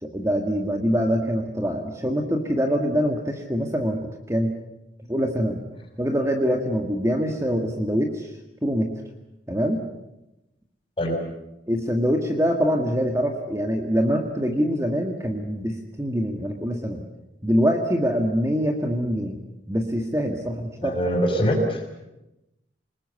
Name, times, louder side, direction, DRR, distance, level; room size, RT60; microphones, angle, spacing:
voice 1, 0.0-4.5 5.1-5.6 6.0-8.3 8.6-8.9 9.5-9.8 11.7-17.0 17.4-19.4 19.7-21.0, equal, 15° right, 3 dB, 1.8 m, -24 dB
voice 2, 20.8-22.0, equal, 30° left, 2 dB, 5.9 m, -23 dB
27.5 x 20.0 x 8.4 m, 0.93 s
head